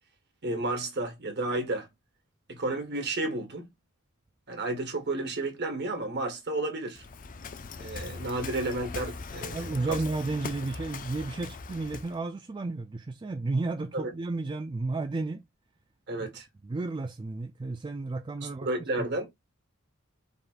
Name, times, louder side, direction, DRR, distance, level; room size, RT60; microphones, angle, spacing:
voice 1, 0.4-1.9 2.5-3.7 4.5-7.0 7.8-10.0 13.9-14.1 16.1-16.5 18.4-19.3, right 2 dB, 50° right, 1.6 m, -32 dB
Waves surf, 6.9-12.2, left 4 dB, 40° left, 0.6 m, -40 dB
voice 2, 9.5-15.4 16.2-16.3 16.6-18.7 19.0-19.3, right 3 dB, 20° right, 0.4 m, -33 dB
5.4 x 3.7 x 2.5 m
head